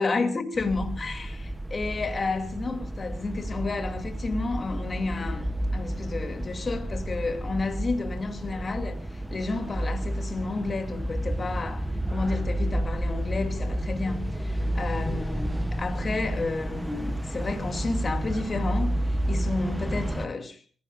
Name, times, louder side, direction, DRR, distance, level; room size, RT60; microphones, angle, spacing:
voice 1, 0.0-19.0 19.2-20.6, left 3 dB, 30° left, 2.6 m, -31 dB
sound 1, 0.6-20.3, right 1 dB, 5° right, 0.8 m, -31 dB
29.0 x 16.5 x 2.5 m
cardioid pair, 135°, 0 cm